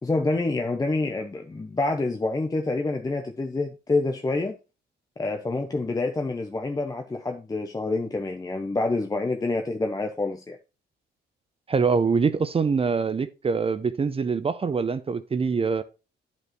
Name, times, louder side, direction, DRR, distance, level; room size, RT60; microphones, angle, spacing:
voice 1, 0.0-4.5 5.2-10.6, left 2 dB, 20° left, 0.7 m, -27 dB
voice 2, 11.7-15.8, right 5 dB, 30° right, 0.6 m, -24 dB
9.8 x 5.3 x 3.1 m
cardioid pair, 90°, 20 cm